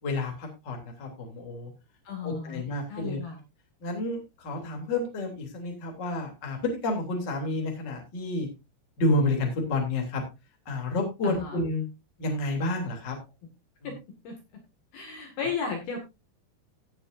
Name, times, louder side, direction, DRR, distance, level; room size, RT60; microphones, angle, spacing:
voice 1, 0.0-1.7 2.2-3.2 3.8-8.5 9.0-10.2 10.6-11.8 12.2-13.2 13.8-13.9, left 2 dB, 25° left, 2 dB, 2.9 m, -30 dB
voice 2, 2.0-2.6 2.9-3.4 11.2-11.6 13.8-13.9 14.2-14.4 14.9-16.0, left 5 dB, 55° left, 2 dB, 3.4 m, -34 dB
17.5 x 8.8 x 2.6 m, 0.25 s
omnidirectional pair, 6.0 m